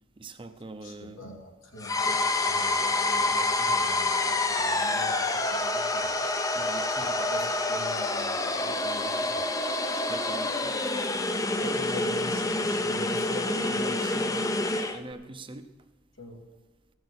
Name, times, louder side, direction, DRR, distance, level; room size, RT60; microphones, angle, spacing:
voice 1, 0.2-1.3 6.5-7.2 9.9-10.8 13.6-14.3 14.9-15.7, right 2 dB, 25° right, 9 dB, 0.7 m, -42 dB
voice 2, 0.8-6.3 7.0-9.4 11.6-14.4 16.2-16.4, left 1 dB, 90° left, 0 dB, 2.6 m, -43 dB
sound 1, 1.8-15.0, left 2 dB, 15° left, 0.6 m, -27 dB
14.5 x 6.3 x 8.5 m, 1.2 s
head